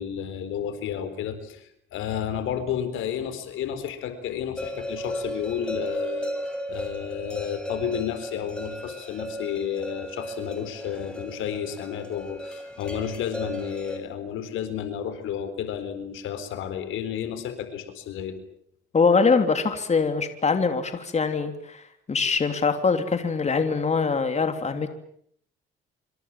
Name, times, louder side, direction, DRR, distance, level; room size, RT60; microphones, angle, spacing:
voice 1, 0.0-6.3 6.7-18.4, left 9 dB, 85° left, 10 dB, 4.3 m, -32 dB
sound 1, 4.6-14.0, equal, 5° left, 7.2 m, -35 dB
voice 2, 18.9-24.9, left 4 dB, 35° left, 7 dB, 3.3 m, -23 dB
27.0 x 25.5 x 7.5 m, 0.67 s
cardioid pair, 90°, 20 cm